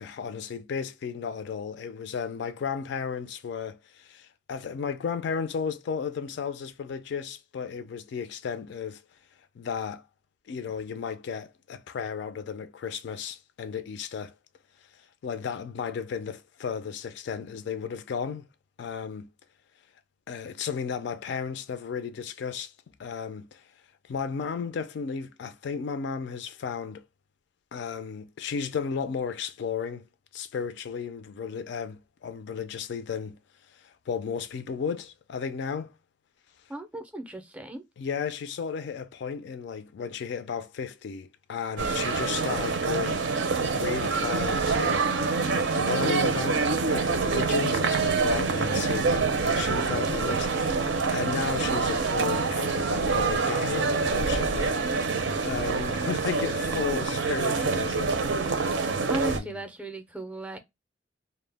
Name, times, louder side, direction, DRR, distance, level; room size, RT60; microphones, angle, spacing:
voice 1, 0.0-9.0 9.6-10.0 10.5-14.3 15.2-18.4 18.8-19.3 20.3-22.7 23.0-23.6 24.1-27.0 27.7-30.0 30.3-33.4 33.7-35.9 38.0-43.3 43.6-45.4 45.7-54.8 55.4-58.2 59.3-59.6, left 6 dB, 65° left, 0.3 m, -34 dB
voice 2, 36.7-37.8 56.9-57.0 59.1-60.6, right 1 dB, 5° right, 0.4 m, -35 dB
sound 1, 41.8-59.4, right 4 dB, 80° right, 0.5 m, -26 dB
2.1 x 2.0 x 3.2 m
head